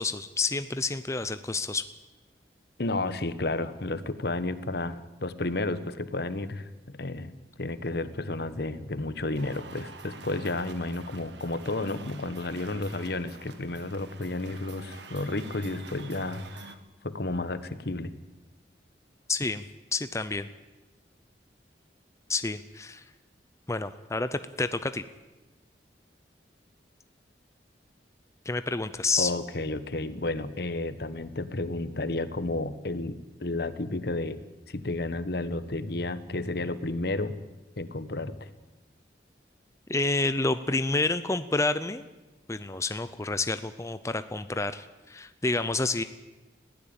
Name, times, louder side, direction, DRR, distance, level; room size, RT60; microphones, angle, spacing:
voice 1, 0.0-1.8 19.3-19.6 19.9-20.5 22.3-23.0 23.7-25.0 28.5-29.3 39.9-42.1 42.5-46.0, left 3 dB, 15° left, 11 dB, 0.6 m, -29 dB
voice 2, 2.8-16.8 17.0-18.1 29.2-34.4 34.7-37.3 37.8-38.5, left 2 dB, 60° left, 13 dB, 1.2 m, -32 dB
sound 1, 9.4-16.8, right 4 dB, 80° right, 1.8 m, -47 dB
20.5 x 15.5 x 8.9 m, 1.1 s
head